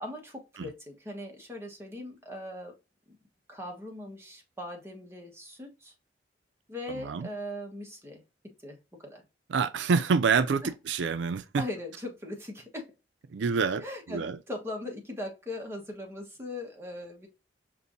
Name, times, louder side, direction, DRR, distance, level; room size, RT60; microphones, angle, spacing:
voice 1, 0.0-2.7 3.1-3.2 3.5-5.9 6.7-8.8 9.0-9.2 10.6-10.7 11.6-12.9 13.8-17.3, left 1 dB, 15° right, 1.2 m, -40 dB
voice 2, 9.5-11.6 13.3-14.4, right 5 dB, 90° right, 0.4 m, -27 dB
5.4 x 2.6 x 2.6 m
head